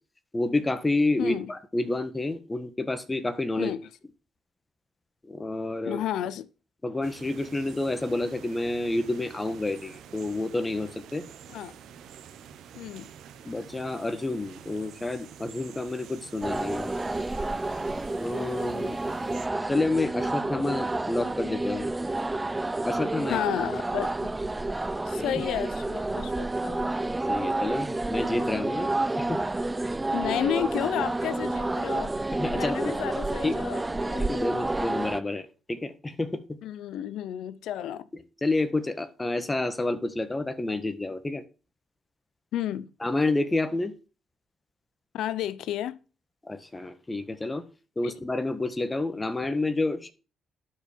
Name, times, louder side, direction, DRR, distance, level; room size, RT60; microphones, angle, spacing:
voice 1, 0.3-3.7 5.2-6.0 6.8-11.2 13.4-16.9 18.2-19.0 19.7-21.9 22.8-23.4 25.2-25.3 27.3-28.9 29.2-29.4 32.3-32.9 33.4-33.5 34.1-36.6 38.4-41.4 43.0-43.9 46.5-47.6 48.0-50.1, left 2 dB, 20° left, 1.5 m, -29 dB
voice 2, 1.2-1.5 3.6-3.9 5.8-6.5 11.5-11.8 12.8-13.1 23.3-24.3 25.1-26.9 30.1-32.1 32.5-34.3 36.6-38.1 42.5-42.9 45.1-46.0 48.0-48.1, left 11 dB, 80° left, 0.7 m, -32 dB
sound 1, 7.0-19.5, right 8 dB, 75° right, 1.1 m, -48 dB
sound 2, 16.4-35.2, right 2 dB, 15° right, 0.4 m, -30 dB
12.0 x 5.5 x 4.5 m
cardioid pair, 90°, 0 cm